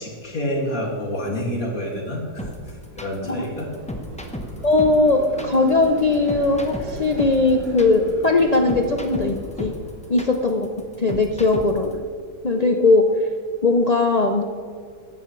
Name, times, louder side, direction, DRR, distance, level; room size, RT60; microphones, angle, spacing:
voice 1, 0.0-3.7, equal, 55° left, -1 dB, 2.7 m, -28 dB
sound 1, 2.0-11.6, right 1 dB, 35° right, 2.0 m, -40 dB
sound 2, 2.4-11.9, left 1 dB, 5° left, 0.6 m, -34 dB
voice 2, 4.6-9.7 10.1-10.7 11.0-12.0 12.4-13.1 13.6-14.4, left 3 dB, 85° left, 3 dB, 0.3 m, -19 dB
14.5 x 10.5 x 3.2 m, 2.1 s
omnidirectional pair, 1.7 m